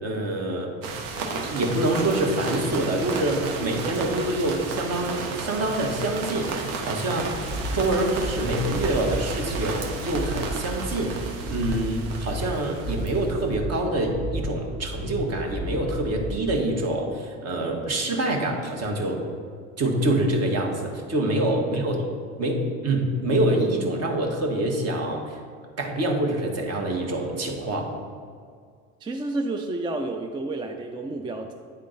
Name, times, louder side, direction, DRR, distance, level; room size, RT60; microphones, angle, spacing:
voice 1, 0.0-0.7 1.3-7.4 7.7-11.2 11.5-19.2 19.8-22.0 22.4-25.4 25.8-27.9, right 1 dB, 45° right, 1 dB, 1.3 m, -26 dB
sound 1, 0.8-13.4, right 4 dB, 65° right, 0.9 m, -33 dB
sound 2, 7.2-16.6, right 1 dB, 90° right, 1.5 m, -34 dB
voice 2, 21.6-22.0 22.6-22.7 29.0-31.5, right 2 dB, 15° right, 4 dB, 0.4 m, -31 dB
8.9 x 3.7 x 3.9 m, 2.1 s
hypercardioid pair, 80°, 37 cm